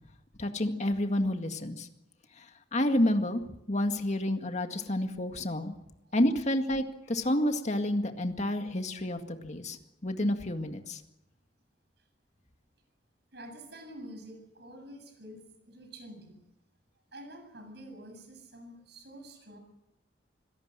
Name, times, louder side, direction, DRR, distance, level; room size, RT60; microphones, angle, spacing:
voice 1, 0.4-1.9 2.4-2.5 2.7-3.4 3.7-5.7 6.1-9.8 10.0-11.0, left 1 dB, 40° left, 6 dB, 2.0 m, -29 dB
voice 2, 13.3-16.4 17.1-19.6, right 1 dB, 65° right, 6 dB, 7.4 m, -48 dB
26.0 x 17.5 x 7.5 m, 0.88 s
head